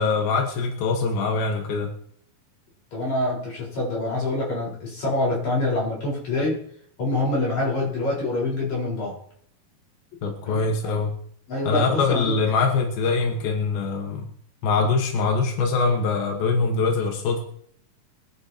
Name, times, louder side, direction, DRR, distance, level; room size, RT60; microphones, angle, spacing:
voice 1, 0.0-1.9 10.2-11.1 11.6-14.3 14.6-17.4, left 4 dB, 90° left, 2 dB, 3.2 m, -23 dB
voice 2, 2.9-6.6 7.0-9.1 10.4-11.0 11.5-12.4, left 2 dB, 50° left, -5 dB, 5.7 m, -26 dB
24.5 x 11.0 x 2.9 m, 0.66 s
omnidirectional pair, 4.1 m